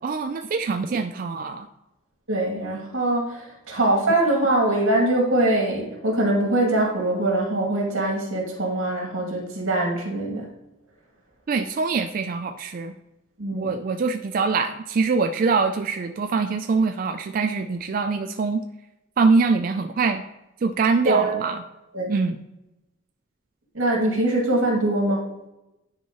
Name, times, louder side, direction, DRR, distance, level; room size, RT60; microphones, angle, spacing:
voice 1, 0.0-1.7 11.5-12.9 13.5-18.6 19.2-20.2 20.6-21.6 22.1-22.4, right 4 dB, 45° right, 6 dB, 0.3 m, -23 dB
voice 2, 2.3-10.5 13.4-13.7 21.0-21.4 21.9-22.1 23.7-25.3, right 1 dB, 90° right, -1 dB, 2.4 m, -23 dB
10.0 x 4.5 x 3.0 m, 0.94 s
head